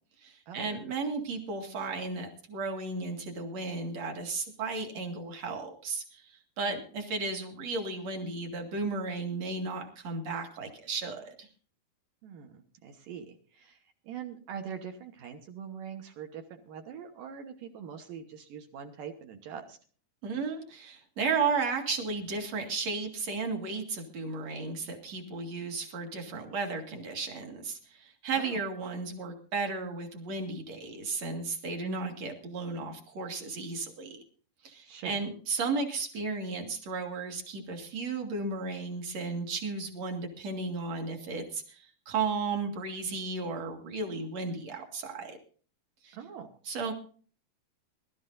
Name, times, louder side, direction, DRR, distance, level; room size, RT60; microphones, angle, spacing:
voice 1, 0.2-11.5 20.2-34.2 34.6-45.4 46.0-46.2 46.6-46.9, right 4 dB, 50° right, 4 dB, 2.8 m, -34 dB
voice 2, 12.2-13.8 14.0-19.8 28.4-28.6 31.8-32.2 34.9-35.2 46.1-46.5, right 7 dB, 65° right, 5 dB, 2.5 m, -43 dB
22.5 x 12.5 x 2.6 m, 0.41 s
omnidirectional pair, 4.5 m